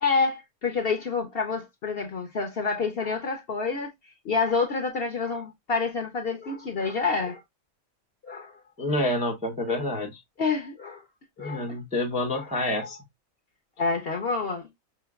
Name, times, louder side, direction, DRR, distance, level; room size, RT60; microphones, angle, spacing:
voice 1, 0.0-3.9 4.2-7.4 8.2-8.5 9.7-9.8 10.4-11.0 11.4-11.7 12.3-12.5 12.8-12.9 13.8-14.7, left 4 dB, 55° left, 0.7 m, -28 dB
voice 2, 8.8-10.2 11.4-13.0, left 1 dB, 10° right, 0.5 m, -28 dB
5.6 x 3.0 x 2.3 m
omnidirectional pair, 1.5 m